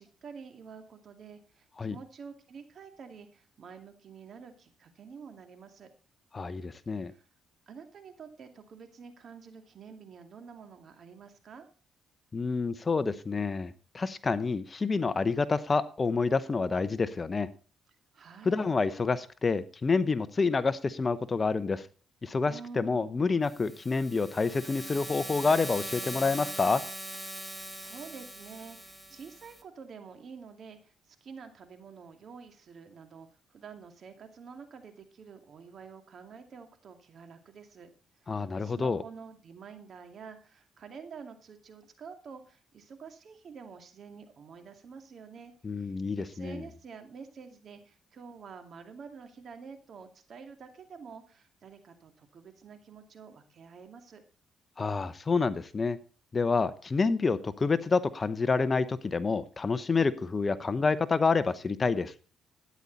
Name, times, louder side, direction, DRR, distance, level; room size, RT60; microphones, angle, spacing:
voice 1, 0.0-5.9 7.0-7.3 7.7-11.7 18.1-18.7 22.5-23.4 27.3-37.9 38.1-54.2, right 5 dB, 55° right, 6 dB, 2.4 m, -48 dB
voice 2, 6.3-7.1 12.3-17.5 18.4-21.9 22.2-26.8 38.3-39.0 45.6-46.6 54.8-56.0 56.3-62.1, left 4 dB, 30° left, 14 dB, 0.8 m, -28 dB
sound 1, 23.4-29.6, right 1 dB, 10° right, 1.8 m, -41 dB
12.5 x 9.8 x 4.0 m, 0.37 s
cardioid pair, 90°, 0 cm